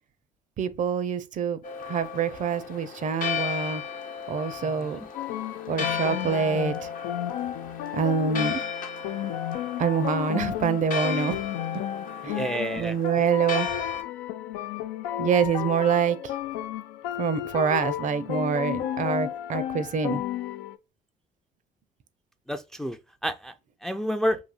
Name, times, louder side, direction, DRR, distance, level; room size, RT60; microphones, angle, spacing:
voice 1, 0.6-1.6 1.9-3.8 4.3-5.0 5.7-6.9 7.9-8.6 9.8-11.4 12.2-12.4 12.8-13.7 15.2-16.3 17.2-20.2, right 6 dB, 50° right, 0.5 m, -26 dB
Church bell, 1.6-14.0, left 6 dB, 55° left, 0.8 m, -35 dB
sound 1, 5.1-20.8, left 12 dB, 85° left, 0.4 m, -33 dB
voice 2, 12.2-13.2 22.5-23.5 23.8-24.4, equal, 5° left, 0.4 m, -30 dB
4.0 x 2.7 x 2.2 m
supercardioid pair, 65°, 16 cm